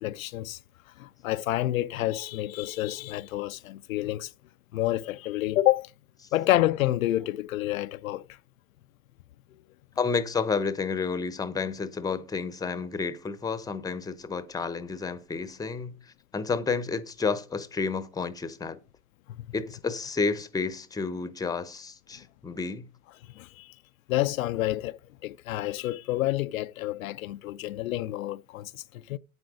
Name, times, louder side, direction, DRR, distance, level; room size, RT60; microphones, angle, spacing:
voice 1, 0.0-0.6 1.0-4.3 4.7-5.9 6.3-8.2 23.4-23.7 24.1-29.2, left 15 dB, 70° left, 0.6 m, -28 dB
voice 2, 10.0-15.9 16.3-18.8 19.5-22.9, left 4 dB, 10° left, 0.9 m, -30 dB
9.6 x 8.0 x 4.9 m
hypercardioid pair, 105°, 42 cm